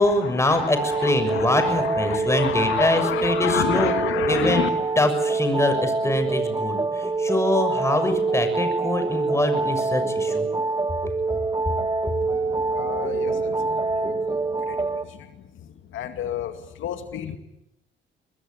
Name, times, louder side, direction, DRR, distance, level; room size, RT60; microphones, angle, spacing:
voice 1, 0.0-4.0 4.3-4.6 4.9-10.5, left 1 dB, 15° left, 8 dB, 6.6 m, -24 dB
sound 1, 0.7-15.0, right 3 dB, 20° right, 2.6 m, -25 dB
voice 2, 1.0-4.7 12.7-14.1 14.7-14.8 15.9-16.5 16.8-17.4, left 10 dB, 80° left, 7 dB, 2.3 m, -29 dB
25.0 x 21.0 x 9.7 m, 0.89 s
cardioid pair, 90°, 20 cm